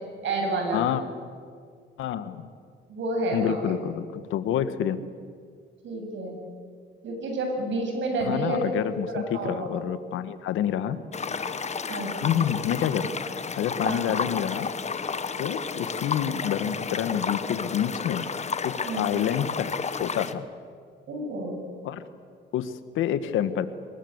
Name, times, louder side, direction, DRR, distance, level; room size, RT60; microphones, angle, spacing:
voice 1, 0.2-0.9 2.9-3.6 5.8-6.4 7.0-8.6 9.1-9.7 11.9-12.4 13.8-14.2 18.8-19.2 21.1-21.6, right 2 dB, 70° right, 2 dB, 7.9 m, -30 dB
voice 2, 2.0-2.5 3.3-5.0 8.2-11.0 12.2-13.1 13.6-14.7 15.4-18.2 18.6-19.7 20.0-20.5 21.8-22.0 22.5-23.7, left 10 dB, 85° left, 12 dB, 1.5 m, -28 dB
sound 1, 11.1-20.3, left 5 dB, 35° left, 1.4 m, -32 dB
26.5 x 21.5 x 8.1 m, 2.1 s
cardioid pair, 90°, 20 cm